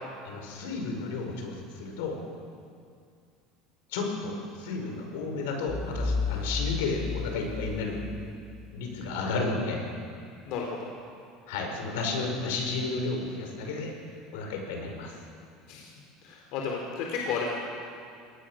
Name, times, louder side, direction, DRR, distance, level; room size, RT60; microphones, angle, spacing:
voice 1, 0.2-2.2 3.9-8.0 8.7-9.8 11.5-13.9 14.3-15.1, left 3 dB, 85° left, 2 dB, 5.3 m, -32 dB
sound 1, 5.7-8.5, left 4 dB, 15° left, 4.2 m, -32 dB
voice 2, 10.5-10.9 15.7-15.9 16.2-17.5, left 5 dB, 65° left, -1 dB, 3.5 m, -32 dB
23.5 x 19.0 x 6.4 m, 2.3 s
supercardioid pair, 130°, 0 cm